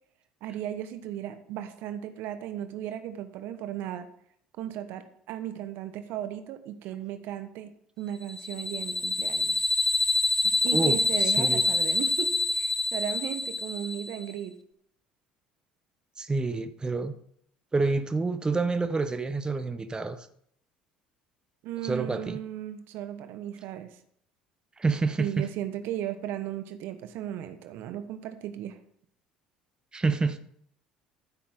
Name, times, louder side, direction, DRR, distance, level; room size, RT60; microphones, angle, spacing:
voice 1, 0.4-4.1 4.6-7.7 8.0-9.7 10.4-14.5 21.6-24.0 25.2-28.8, right 11 dB, 60° right, 1.3 m, -36 dB
sound 1, 8.3-14.2, left 2 dB, 10° left, 1.2 m, -26 dB
voice 2, 10.7-11.6 16.2-17.1 17.7-20.3 21.8-22.4 24.8-25.5 29.9-30.4, right 3 dB, 20° right, 1.1 m, -28 dB
14.5 x 8.5 x 3.8 m
hypercardioid pair, 60°, 4 cm